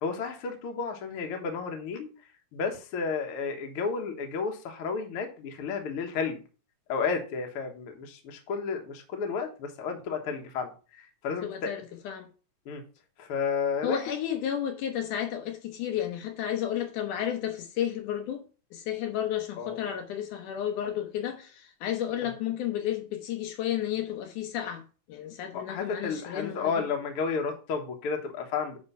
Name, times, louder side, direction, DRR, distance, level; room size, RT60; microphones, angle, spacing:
voice 1, 0.0-2.1 2.5-6.4 6.9-11.7 12.7-12.8 13.2-14.0 19.6-19.8 25.5-28.8, left 5 dB, 55° left, 1.8 m, -32 dB
voice 2, 11.4-12.3 13.8-18.4 18.7-24.8 25.1-26.9, left 10 dB, 75° left, 2.3 m, -32 dB
9.5 x 3.7 x 5.5 m
omnidirectional pair, 3.8 m